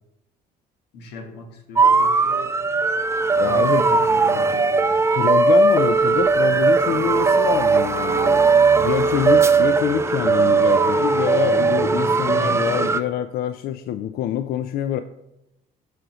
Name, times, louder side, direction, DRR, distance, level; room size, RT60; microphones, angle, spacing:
voice 1, 0.9-2.6 3.5-4.8, left 2 dB, 90° left, 4 dB, 1.7 m, -36 dB
sound 1, 1.8-13.0, right 4 dB, 15° right, 0.4 m, -18 dB
voice 2, 3.4-3.8 5.1-8.4 8.8-15.0, left 10 dB, 65° left, 11 dB, 0.4 m, -25 dB
7.6 x 5.0 x 6.2 m, 0.88 s
cardioid pair, 110°, 17 cm